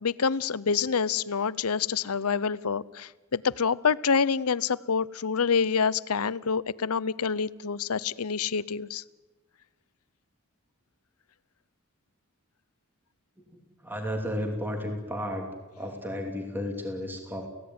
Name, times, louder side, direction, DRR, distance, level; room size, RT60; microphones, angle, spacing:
voice 1, 0.0-9.0, left 6 dB, 85° left, 19 dB, 0.7 m, -27 dB
voice 2, 13.5-15.5 15.8-17.5, equal, 10° right, 3 dB, 2.8 m, -33 dB
29.5 x 16.5 x 9.6 m, 1.2 s
head